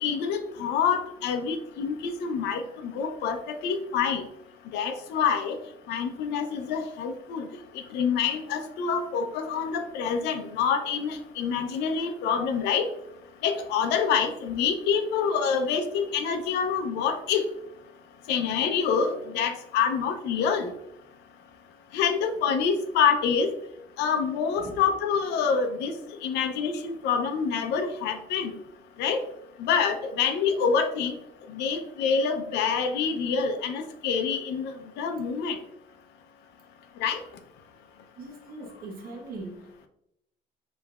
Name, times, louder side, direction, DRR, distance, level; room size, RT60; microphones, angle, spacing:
voice 1, 0.0-4.2 4.7-5.6 5.9-7.5 7.9-12.9 13.4-17.4 18.3-20.7 21.9-23.5 24.0-25.9 26.2-28.5 29.0-29.2 29.6-31.1 31.5-35.6 37.0-37.2, left 6 dB, 85° left, 7 dB, 0.6 m, -26 dB
voice 2, 38.2-39.7, right 2 dB, 60° right, -1 dB, 1.0 m, -40 dB
5.2 x 3.3 x 2.3 m, 0.81 s
cardioid pair, 110°, 17 cm